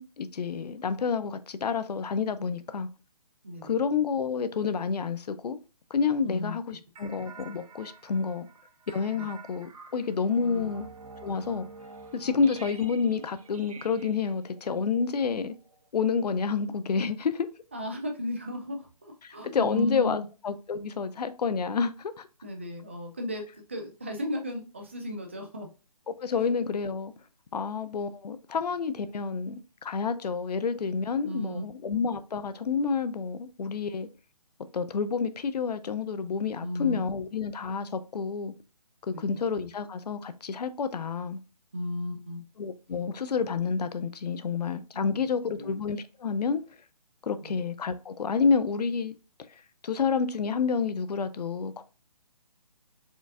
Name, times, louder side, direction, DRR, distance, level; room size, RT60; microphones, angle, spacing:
voice 1, 0.0-2.9 3.6-5.6 5.9-8.5 8.9-10.9 11.2-11.7 12.1-15.5 15.9-17.5 19.2-22.3 26.1-27.1 27.5-34.1 34.7-38.5 39.1-41.4 42.6-46.6 47.2-49.2 49.8-51.8, left 5 dB, 75° left, 0.5 m, -29 dB
voice 2, 3.4-3.8 6.2-6.6 9.1-9.3 10.4-10.7 17.7-20.3 22.4-25.7 26.4-26.5 31.2-31.6 36.6-37.0 39.1-39.4 41.7-42.4 44.9-45.2 45.6-45.8 47.5-47.6, left 1 dB, 20° right, 0.4 m, -35 dB
sound 1, 6.9-15.9, right 4 dB, 60° right, 0.7 m, -49 dB
4.4 x 2.4 x 2.5 m
hypercardioid pair, 170°, 20 cm